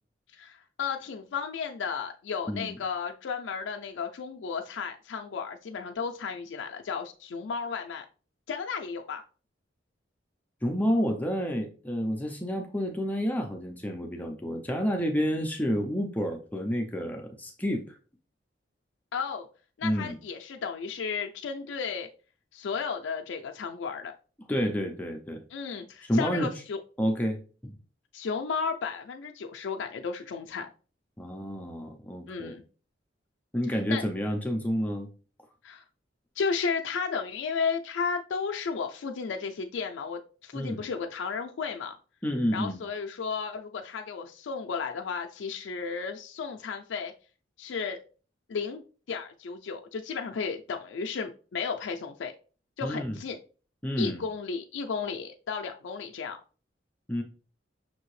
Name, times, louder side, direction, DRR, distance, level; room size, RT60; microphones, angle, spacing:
voice 1, 0.3-8.0 8.5-9.2 19.1-19.5 19.8-22.1 22.5-24.1 25.5-26.8 28.1-30.7 32.3-32.6 33.9-34.0 35.6-35.8 36.4-42.0 42.5-47.1 47.6-48.0 48.5-48.8 49.1-52.3 52.8-53.4 54.0-56.4, left 5 dB, 85° left, 0.4 m, -33 dB
voice 2, 2.5-2.8 10.6-18.0 19.8-20.2 24.5-25.4 26.0-26.5 27.0-27.8 31.2-32.6 33.5-35.1 40.5-40.8 42.2-42.8 52.8-53.2 53.8-54.2 57.1-57.2, equal, 10° left, 0.4 m, -29 dB
5.8 x 2.7 x 3.1 m
head